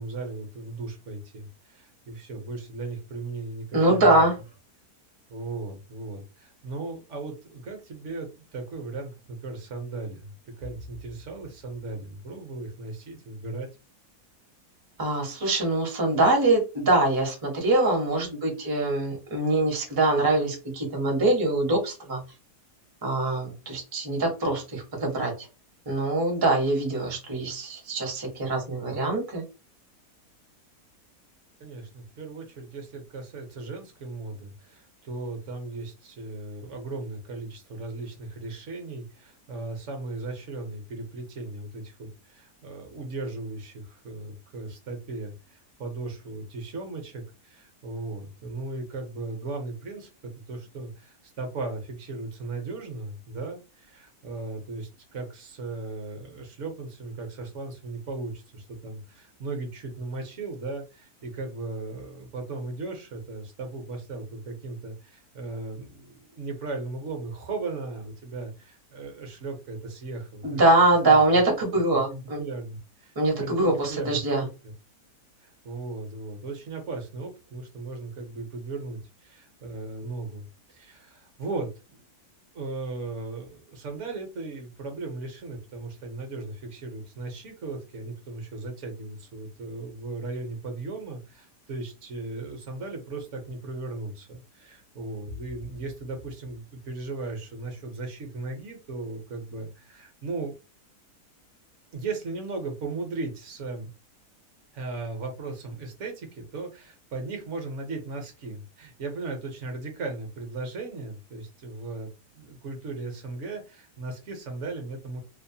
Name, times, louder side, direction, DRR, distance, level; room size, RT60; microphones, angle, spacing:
voice 1, 0.0-4.3 5.3-13.7 31.6-70.6 71.1-71.4 71.9-74.7 75.4-82.0 82.5-100.6 101.9-103.9 104.7-115.2, right 3 dB, 60° right, 4 dB, 0.9 m, -37 dB
voice 2, 3.7-4.3 15.0-22.2 23.0-25.5 25.9-29.4 70.4-72.4 73.2-74.4, right 2 dB, 25° right, 0 dB, 0.5 m, -23 dB
2.7 x 2.1 x 2.6 m, 0.29 s
omnidirectional pair, 1.7 m